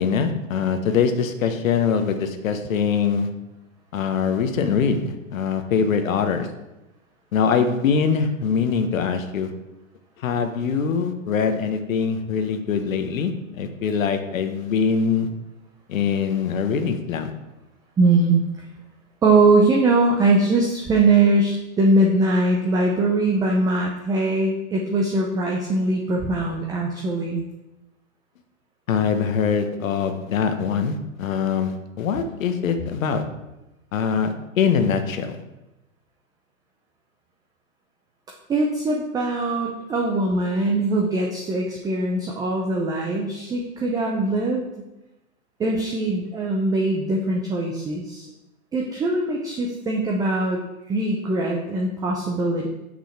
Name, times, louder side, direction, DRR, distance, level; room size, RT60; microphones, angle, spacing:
voice 1, 0.0-3.3 3.9-6.5 7.3-9.5 10.2-13.3 13.6-15.3 15.9-17.3 28.9-33.2 33.9-35.4, left 6 dB, 70° left, 8 dB, 1.0 m, -23 dB
voice 2, 18.0-18.4 19.2-27.4 38.5-44.6 45.6-48.3 48.7-50.6 50.9-52.7, right 2 dB, 10° right, -1 dB, 0.5 m, -21 dB
6.1 x 5.5 x 4.2 m, 0.96 s
hypercardioid pair, 110°, 41 cm